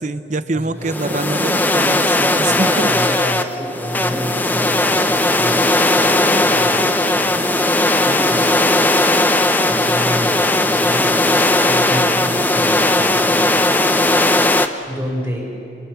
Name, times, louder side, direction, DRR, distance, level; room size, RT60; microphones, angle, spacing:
voice 1, 0.0-2.9, right 2 dB, 45° right, 12 dB, 0.8 m, -24 dB
voice 2, 0.5-1.4 2.4-7.5 7.8-8.9 9.6-14.0 14.9-15.6, equal, 15° right, -2 dB, 5.4 m, -29 dB
sound 1, 0.9-14.7, left 2 dB, 10° left, 0.7 m, -17 dB
30.0 x 23.0 x 7.0 m, 2.7 s
head